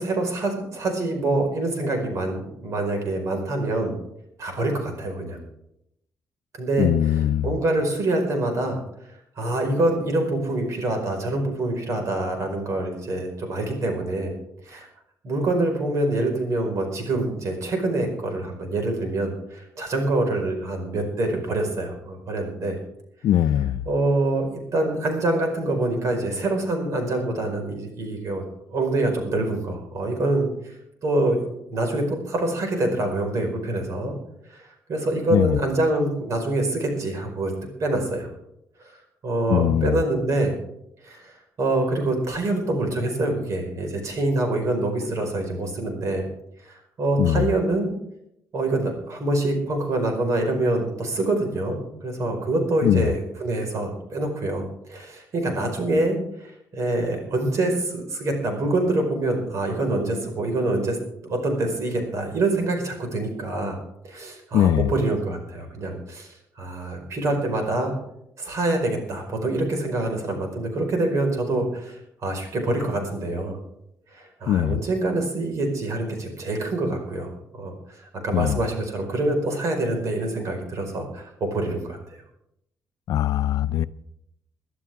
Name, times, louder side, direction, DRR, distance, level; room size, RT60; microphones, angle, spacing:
voice 1, 0.0-4.0 4.4-5.4 6.5-8.8 9.4-14.3 14.6-14.9 15.2-22.8 23.9-28.4 28.7-30.8 31.0-31.4 31.7-34.1 34.4-38.3 38.8-38.9 39.2-40.5 41.0-46.2 46.6-48.0 48.5-61.0 61.2-63.8 64.1-68.0 68.4-73.6 74.1-77.3 77.5-82.2, right 2 dB, 55° right, 4.9 m, -25 dB
voice 2, 6.8-7.5 23.2-23.8 35.3-35.6 39.5-39.9 47.2-47.5 52.8-53.1 64.5-64.9 74.5-74.8 78.3-78.6 83.1-83.9, left 11 dB, 75° left, 0.5 m, -21 dB
22.5 x 12.0 x 3.6 m
cardioid pair, 120°, 6 cm